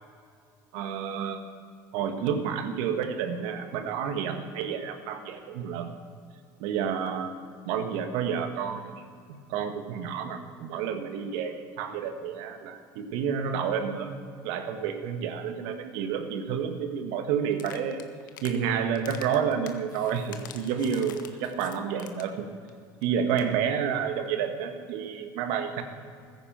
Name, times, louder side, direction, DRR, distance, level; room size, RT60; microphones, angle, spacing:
voice 1, 0.7-1.4 1.9-5.9 6.6-7.3 7.6-18.0 18.4-22.5 23.0-25.8, right 7 dB, 70° right, 6 dB, 1.6 m, -30 dB
sound 1, 17.5-18.6 18.9-22.4 22.7-22.8 23.0-23.1 23.3-23.5, left 9 dB, 85° left, 1.1 m, -46 dB
15.0 x 10.0 x 7.4 m, 2.3 s
hypercardioid pair, 75°, 10 cm